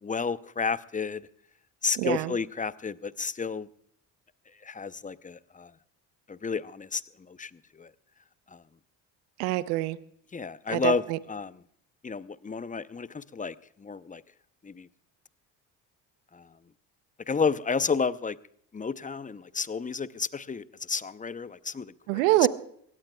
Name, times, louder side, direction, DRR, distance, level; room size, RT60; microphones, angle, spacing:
voice 1, 0.0-1.3 1.8-3.7 4.6-5.7 6.3-7.0 7.3-7.9 8.5-8.6 10.3-11.6 12.0-14.2 14.6-14.9 16.3-16.5 17.3-18.4 18.7-22.3, left 5 dB, 15° left, 16 dB, 0.7 m, -31 dB
voice 2, 2.0-2.3 9.4-10.0 10.7-11.2 22.1-22.5, right 18 dB, 85° right, 16 dB, 0.8 m, -25 dB
23.0 x 17.5 x 2.3 m, 0.66 s
hypercardioid pair, 60°, 45 cm